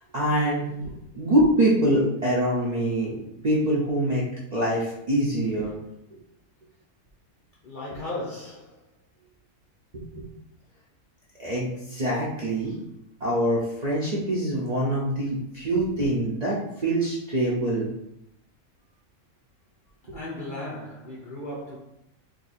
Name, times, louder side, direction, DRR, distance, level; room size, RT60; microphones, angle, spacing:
voice 1, 0.1-4.3 4.5-5.8 9.9-10.2 11.4-12.7 13.2-17.9, right 1 dB, 50° right, 0.5 m, -25 dB
voice 2, 7.6-8.8 20.1-21.8, left 1 dB, 55° left, 0.6 m, -36 dB
2.6 x 2.6 x 4.0 m
omnidirectional pair, 1.5 m